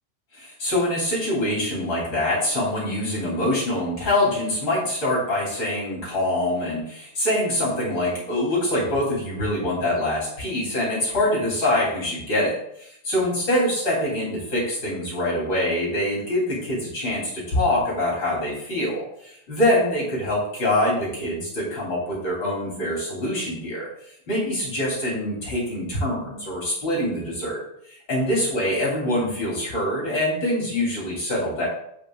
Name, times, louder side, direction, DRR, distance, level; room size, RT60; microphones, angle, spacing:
voice 1, 0.3-23.9 24.3-27.6 27.9-31.6, left 1 dB, 30° left, -5 dB, 2.4 m, -24 dB
15.5 x 5.3 x 2.3 m, 0.73 s
omnidirectional pair, 5.9 m